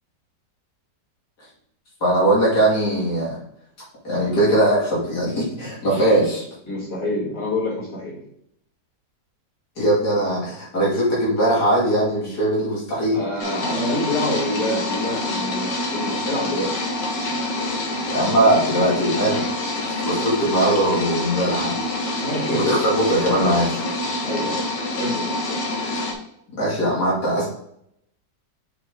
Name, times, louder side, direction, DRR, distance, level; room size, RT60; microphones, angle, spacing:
voice 1, 2.0-3.4 4.0-6.4 9.8-13.2 18.1-19.4 19.8-21.8 22.1-22.2 22.5-23.8 26.5-27.5, right 1 dB, 65° left, -6 dB, 3.1 m, -20 dB
voice 2, 6.7-8.2 13.1-16.7 22.2-22.7 24.2-24.6 25.0-25.3, left 1 dB, 15° left, -8 dB, 3.0 m, -27 dB
sound 1, 13.4-26.1, left 1 dB, 85° left, 2.0 m, -26 dB
6.0 x 5.4 x 3.7 m, 0.73 s
omnidirectional pair, 1.9 m